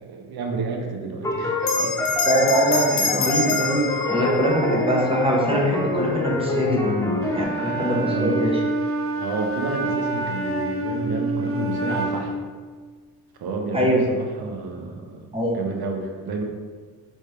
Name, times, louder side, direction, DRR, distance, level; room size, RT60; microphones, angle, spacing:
voice 1, 0.0-1.9 8.0-8.4 9.2-12.3 13.4-15.3 15.5-16.4, right 4 dB, 60° right, 2 dB, 0.9 m, -30 dB
sound 1, 1.2-7.4, left 3 dB, 10° left, 0.5 m, -26 dB
Bell, 1.6-6.5, left 3 dB, 70° left, 0.9 m, -28 dB
voice 2, 2.3-6.9 7.3-8.6 13.7-14.0 15.3-15.6, equal, 15° right, -3 dB, 1.2 m, -22 dB
Wind instrument woodwind instrument, 7.2-12.4, right 1 dB, 30° right, 0.7 m, -27 dB
3.3 x 3.2 x 4.3 m, 1.5 s
supercardioid pair, 65°, 43 cm